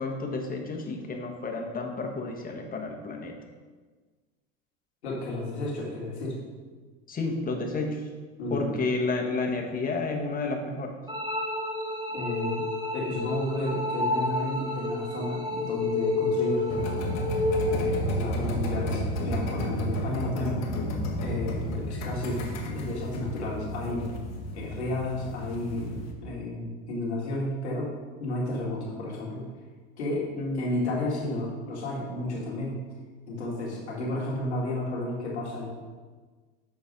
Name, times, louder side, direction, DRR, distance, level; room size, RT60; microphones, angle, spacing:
voice 1, 0.0-3.4 7.1-8.1 8.5-11.0 30.4-30.7, left 3 dB, 25° left, 2 dB, 1.4 m, -31 dB
voice 2, 5.0-6.4 8.4-8.7 12.1-12.7 12.9-17.0 17.6-20.7 21.2-24.1 24.5-29.5 30.0-30.3 30.5-32.8 33.3-35.7, left 1 dB, 90° left, -4 dB, 2.3 m, -32 dB
sound 1, 11.1-18.1, left 2 dB, 10° right, 1.3 m, -29 dB
sound 2, 16.7-26.1, equal, 55° left, 1.4 m, -32 dB
7.2 x 4.7 x 5.2 m, 1.4 s
hypercardioid pair, 90°, 32 cm